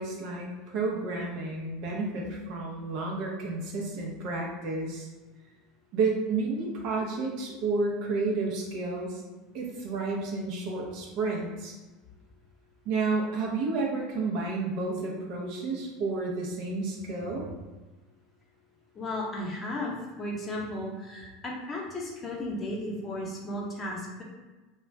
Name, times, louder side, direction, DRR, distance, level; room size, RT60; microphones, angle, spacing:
voice 1, 0.0-5.1 5.9-9.2 9.5-11.7 12.9-17.5, right 3 dB, 60° right, -1 dB, 0.5 m, -31 dB
voice 2, 18.9-24.2, left 1 dB, 30° left, -2 dB, 0.7 m, -35 dB
2.4 x 2.2 x 3.1 m, 1.2 s
hypercardioid pair, 90°, 0 cm